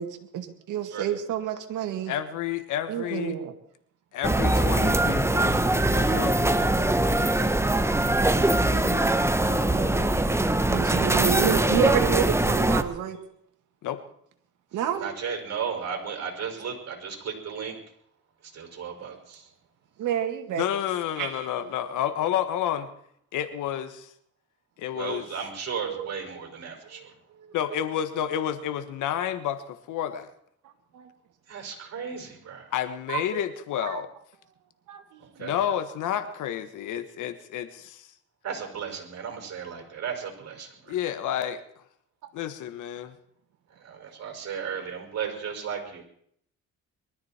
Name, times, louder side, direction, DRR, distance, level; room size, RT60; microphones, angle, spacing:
voice 1, 0.0-2.1 2.9-3.5 10.7-13.2 14.7-15.1 20.0-20.6 21.2-21.5 25.8-26.1 26.9-27.1 27.3-27.5 30.9-31.1 33.1-33.4 33.8-34.0 34.9-35.2, right 10 dB, 85° right, 6 dB, 2.2 m, -29 dB
voice 2, 2.1-3.3 4.1-7.6 8.7-10.2 13.8-14.0 20.6-22.9 23.3-24.1 24.8-25.2 27.5-30.3 32.7-34.1 35.4-38.1 40.9-41.8 42.3-43.2, left 10 dB, 85° left, 10 dB, 1.5 m, -31 dB
sound 1, 4.2-12.8, right 1 dB, 10° right, 1.2 m, -22 dB
voice 3, 15.0-17.8 18.4-19.5 24.9-27.1 31.5-32.7 35.4-35.6 38.4-41.0 43.8-46.0, right 6 dB, 60° right, 2 dB, 6.0 m, -35 dB
22.5 x 13.5 x 4.5 m, 0.67 s
cardioid pair, 90°, 30 cm